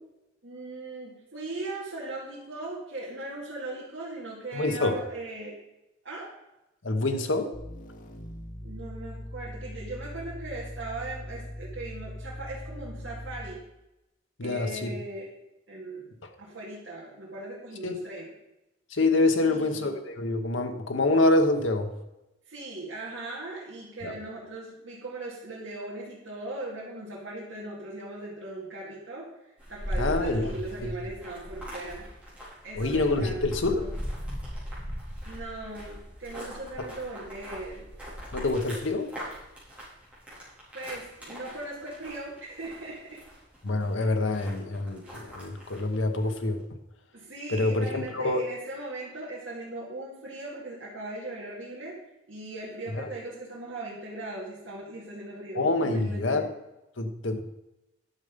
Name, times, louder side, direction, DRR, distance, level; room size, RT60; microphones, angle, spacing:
voice 1, 0.4-5.6 6.0-6.3 8.6-13.6 14.4-15.3 15.7-16.1 16.4-18.3 19.4-19.9 22.5-32.4 32.6-33.4 33.8-34.0 35.2-37.9 40.3-43.2 43.9-44.1 47.1-52.0 52.3-56.4, right 2 dB, 75° right, -6 dB, 2.2 m, -39 dB
voice 2, 4.5-5.0 6.8-7.5 14.4-14.9 17.8-18.0 18.9-21.9 24.0-24.1 30.0-30.5 30.8-30.9 32.8-33.8 36.8-36.9 38.3-39.1 43.6-46.6 47.5-48.4 52.9-53.1 55.5-56.5 57.0-57.4, left 2 dB, 85° left, 5 dB, 1.1 m, -26 dB
sound 1, 7.5-13.7, left 1 dB, 45° left, 1.2 m, -41 dB
sound 2, 29.6-46.5, equal, 5° right, 4.0 m, -39 dB
10.5 x 6.6 x 5.2 m, 0.94 s
head